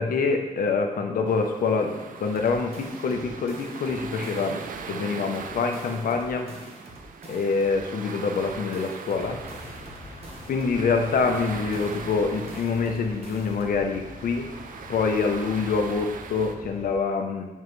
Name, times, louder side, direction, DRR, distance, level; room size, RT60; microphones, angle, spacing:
voice 1, 0.0-1.9 2.2-4.6 4.9-6.5 7.3-9.4 10.5-14.5 14.9-17.5, left 4 dB, 75° left, 4 dB, 0.8 m, -25 dB
sound 1, 1.3-16.5, right 6 dB, 70° right, 0.5 m, -40 dB
sound 2, 2.2-4.8 5.2-7.8 8.2-10.8 11.2-13.8, right 1 dB, 45° right, 1.3 m, -47 dB
sound 3, 9.1-17.0, left 3 dB, 45° left, 0.8 m, -45 dB
7.3 x 5.5 x 3.2 m, 1.1 s
wide cardioid pair, 145°, 15 cm